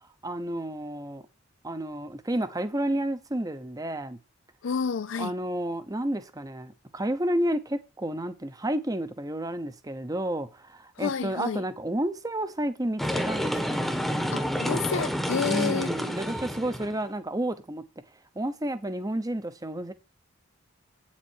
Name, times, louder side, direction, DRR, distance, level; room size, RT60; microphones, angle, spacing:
voice 1, 0.2-1.2 1.6-4.2 5.2-13.8 15.5-17.8 18.3-19.9, right 1 dB, 15° right, 0.8 m, -31 dB
voice 2, 4.6-5.3 11.0-11.6 14.3-16.0, left 6 dB, 60° left, 0.5 m, -29 dB
sound 1, 13.0-17.0, equal, ahead, 1.1 m, -29 dB
9.0 x 7.3 x 4.5 m
head